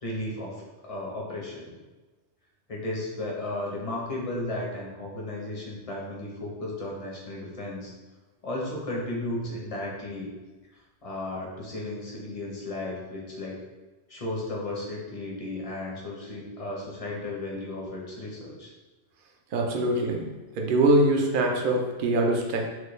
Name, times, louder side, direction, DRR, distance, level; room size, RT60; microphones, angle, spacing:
voice 1, 0.0-1.7 2.7-7.9 8.4-10.3 10.7-13.6 14.1-18.7, left 1 dB, 35° left, -3 dB, 0.7 m, -34 dB
voice 2, 19.5-20.3 20.6-22.7, right 1 dB, 55° right, 2 dB, 0.7 m, -23 dB
4.6 x 2.2 x 3.1 m, 1.2 s
omnidirectional pair, 1.2 m